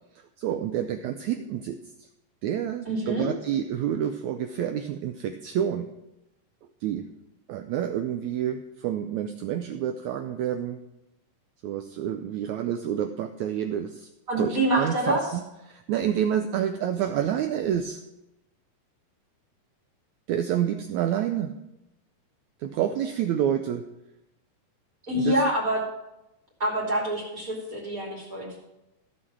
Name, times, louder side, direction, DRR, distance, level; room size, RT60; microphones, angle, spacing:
voice 1, 0.4-1.8 2.4-5.9 6.8-7.1 7.5-10.8 11.6-14.1 14.4-15.4 15.7-18.0 20.3-21.6 22.6-23.9 25.2-25.4, right 10 dB, 85° right, 7 dB, 1.7 m, -28 dB
voice 2, 2.9-3.3 14.3-15.2 25.1-25.8 26.6-28.6, right 1 dB, 25° right, -2 dB, 2.8 m, -26 dB
14.5 x 6.1 x 6.1 m, 0.90 s
omnidirectional pair, 4.0 m